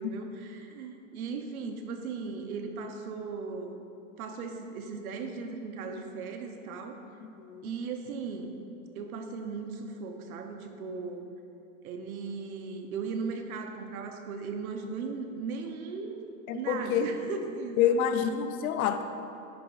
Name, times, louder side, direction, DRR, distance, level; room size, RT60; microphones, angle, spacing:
voice 1, 0.0-3.8 4.2-7.0 7.6-8.6 8.9-11.3 11.8-16.2 16.5-18.1, right 5 dB, 90° right, 5 dB, 1.0 m, -37 dB
voice 2, 7.4-7.7 16.5-17.0 17.8-19.0, left 8 dB, 80° left, 9 dB, 0.7 m, -27 dB
10.0 x 6.9 x 2.5 m, 2.7 s
supercardioid pair, 150°, 42 cm